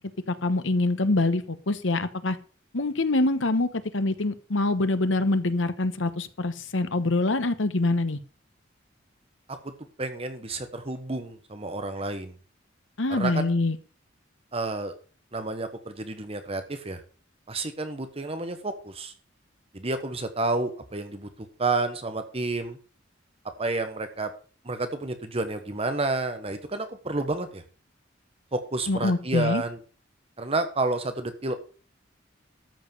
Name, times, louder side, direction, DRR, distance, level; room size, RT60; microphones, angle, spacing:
voice 1, 0.3-2.4 2.7-8.2 13.0-13.8 28.9-29.6, left 2 dB, 75° left, 11 dB, 1.1 m, -25 dB
voice 2, 10.0-12.3 13.1-13.5 14.5-14.9 15.3-17.0 17.5-19.1 19.7-21.3 21.6-22.8 23.6-24.3 24.6-27.6 28.5-29.8 30.4-31.5, right 2 dB, 30° right, 8 dB, 1.1 m, -30 dB
13.0 x 5.2 x 6.8 m, 0.39 s
head